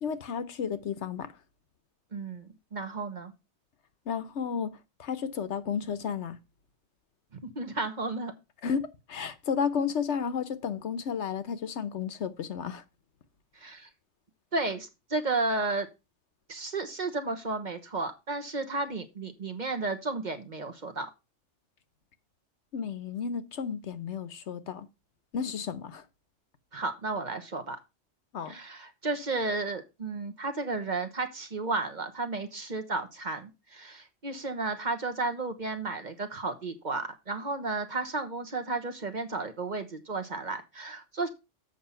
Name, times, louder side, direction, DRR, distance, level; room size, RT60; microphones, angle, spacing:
voice 1, 0.0-1.3 4.1-4.7 5.0-6.4 8.6-12.8 22.7-24.9 25.3-26.0 28.3-28.5, left 6 dB, 75° left, 1.1 m, -32 dB
voice 2, 2.1-3.3 7.3-8.3 13.6-13.9 14.5-15.9 16.5-21.1 26.7-27.8 28.5-41.3, right 3 dB, 40° right, 1.2 m, -33 dB
7.8 x 5.5 x 5.6 m
omnidirectional pair, 1.2 m